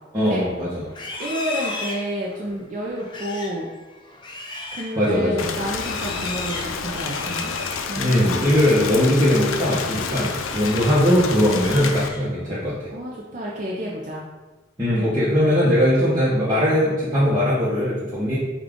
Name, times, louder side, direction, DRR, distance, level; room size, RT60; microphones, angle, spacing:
voice 1, 0.1-0.8 5.0-5.4 8.0-12.8 14.8-18.4, equal, 20° right, -11 dB, 0.8 m, -20 dB
Livestock farm animals working animals, 0.8-8.8 9.1-9.4 9.8-11.1 11.4-12.5, left 2 dB, 25° left, 0.5 m, -36 dB
voice 2, 1.2-3.7 4.7-7.5 7.9-8.4 12.9-14.2, equal, 40° right, -4 dB, 0.5 m, -30 dB
Rain, 5.4-12.1, left 5 dB, 90° left, 0.4 m, -29 dB
5.1 x 2.4 x 3.6 m, 1.2 s
head